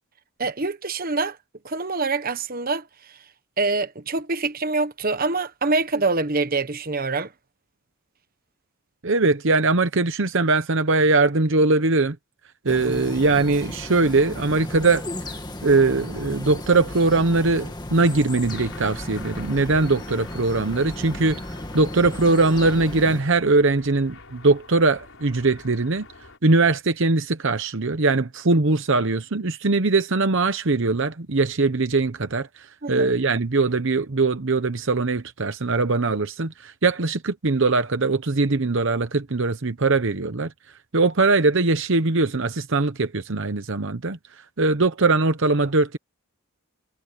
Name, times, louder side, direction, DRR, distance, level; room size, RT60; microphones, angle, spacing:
voice 1, 0.4-1.4 1.6-2.9 3.6-7.3 32.8-33.1, right 3 dB, 40° right, 1.2 m, -25 dB
voice 2, 9.0-12.2 12.6-15.0 15.6-21.4 21.7-26.1 26.4-40.5 40.9-44.2 44.6-46.0, right 3 dB, 60° right, 0.9 m, -21 dB
sound 1, 12.7-23.2, left 1 dB, 20° left, 2.1 m, -35 dB
sound 2, 18.5-26.4, left 4 dB, 60° left, 6.5 m, -46 dB
head